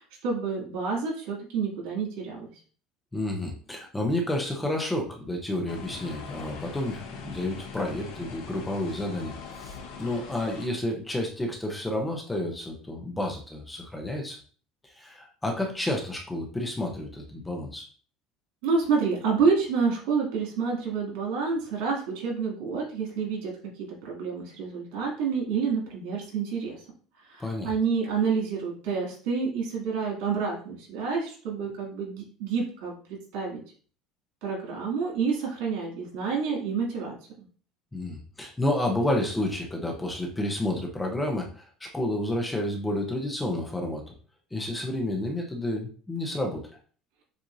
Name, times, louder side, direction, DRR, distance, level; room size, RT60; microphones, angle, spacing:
voice 1, 0.0-2.5 18.6-23.5 24.0-26.8 27.2-33.6 34.4-37.1, right 5 dB, 80° right, -1 dB, 2.4 m, -28 dB
voice 2, 3.1-14.4 14.9-17.9 27.4-27.7 37.9-44.0 44.5-46.7, left 1 dB, 5° left, 1 dB, 0.6 m, -30 dB
sound 1, 5.7-10.7, left 5 dB, 75° left, 1.0 m, -42 dB
7.4 x 2.6 x 2.6 m, 0.41 s
cardioid pair, 170°, 0 cm